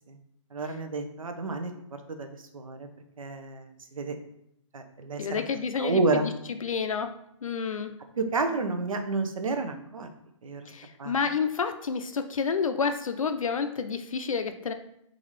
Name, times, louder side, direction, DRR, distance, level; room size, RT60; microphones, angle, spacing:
voice 1, 0.5-1.7 2.1-2.9 3.2-4.2 4.7-5.4 5.8-6.3 8.2-10.1 10.4-10.7 11.0-11.1, right 3 dB, 90° right, 6 dB, 0.7 m, -30 dB
voice 2, 5.2-6.3 6.6-7.1 7.4-7.9 10.7-14.7, left 5 dB, 90° left, 8 dB, 0.6 m, -29 dB
4.0 x 3.8 x 3.1 m, 0.76 s
hypercardioid pair, 150°, 17 cm